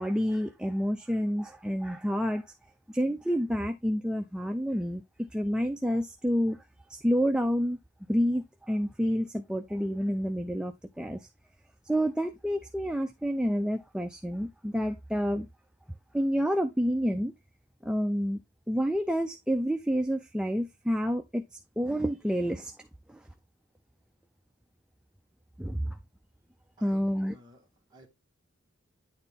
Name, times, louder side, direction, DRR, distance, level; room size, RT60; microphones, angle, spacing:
voice 1, 0.0-2.4 2.9-6.6 6.9-7.8 8.1-11.3 11.9-15.5 16.1-17.3 17.8-18.4 18.7-22.7 23.1-23.2 25.6-26.0 26.8-27.4, equal, 5° right, 0.5 m, -29 dB
voice 2, 26.8-28.1, equal, 20° right, 2.2 m, -55 dB
9.8 x 4.3 x 3.6 m
head